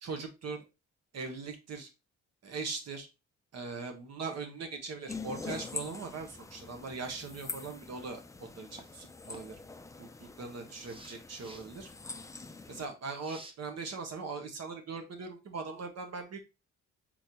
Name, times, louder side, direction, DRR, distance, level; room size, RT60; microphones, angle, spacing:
voice 1, 0.0-0.6 1.1-1.9 2.4-3.1 3.5-9.6 10.0-11.9 12.7-16.4, right 4 dB, 55° right, 4 dB, 1.4 m, -40 dB
sound 1, 5.1-12.9, left 3 dB, 10° left, 0.4 m, -44 dB
sound 2, 8.7-8.9 9.3-9.4 10.8-11.7 13.2-13.5, right 1 dB, 15° right, 0.9 m, -51 dB
4.5 x 3.8 x 2.9 m, 0.27 s
cardioid pair, 90°, 30 cm